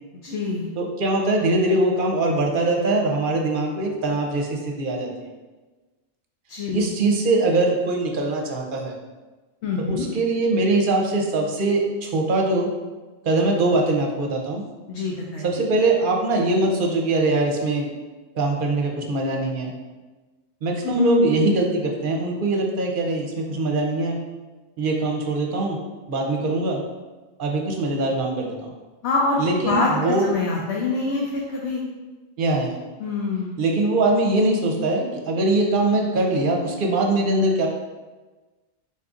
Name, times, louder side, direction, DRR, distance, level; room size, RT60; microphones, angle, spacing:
voice 1, 0.2-0.7 6.5-6.9 9.6-10.1 14.9-15.5 20.8-21.4 29.0-31.8 33.0-33.6, left 3 dB, 75° left, -2 dB, 0.9 m, -25 dB
voice 2, 0.8-5.3 6.7-8.9 9.9-12.7 13.2-14.6 15.4-17.9 18.4-19.7 20.6-24.2 24.8-25.8 26.1-26.8 27.4-28.7 29.4-30.2 32.4-32.7 33.6-37.7, right 2 dB, 55° right, 1 dB, 0.7 m, -22 dB
4.3 x 3.9 x 2.4 m, 1.2 s
omnidirectional pair, 1.2 m